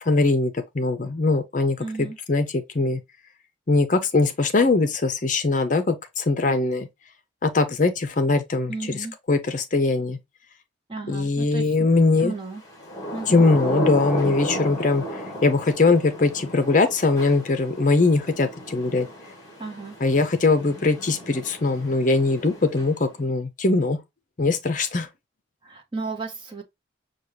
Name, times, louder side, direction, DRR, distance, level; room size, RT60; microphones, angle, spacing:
voice 1, 0.1-3.0 3.7-6.9 7.4-10.2 11.1-12.3 13.3-15.0 15.4-19.1 20.0-24.0 24.4-25.1, left 3 dB, 40° left, 0.6 m, -21 dB
voice 2, 1.8-2.2 8.7-9.1 10.9-11.9 12.2-12.6 13.1-13.5 19.6-19.9 25.6-26.6, right 3 dB, 25° right, 0.9 m, -34 dB
Thunder / Rain, 12.6-23.2, equal, 15° left, 1.7 m, -34 dB
6.1 x 2.3 x 3.2 m
head